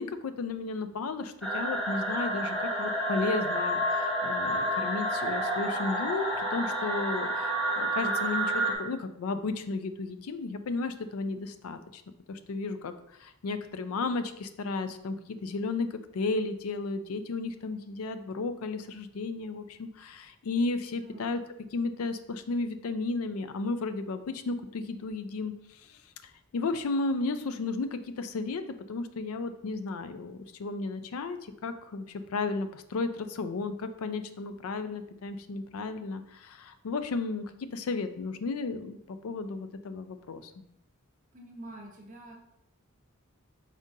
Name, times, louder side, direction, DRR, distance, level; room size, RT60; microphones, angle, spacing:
voice 1, 0.0-12.0 12.3-12.9 13.2-21.4 21.7-25.5 25.8-28.6 28.9-40.6, left 3 dB, 90° left, 10 dB, 0.4 m, -34 dB
sound 1, 1.4-8.7, right 1 dB, ahead, 0.9 m, -29 dB
voice 2, 41.3-42.4, right 1 dB, 40° right, 0 dB, 0.9 m, -46 dB
4.9 x 3.7 x 2.7 m, 0.80 s
head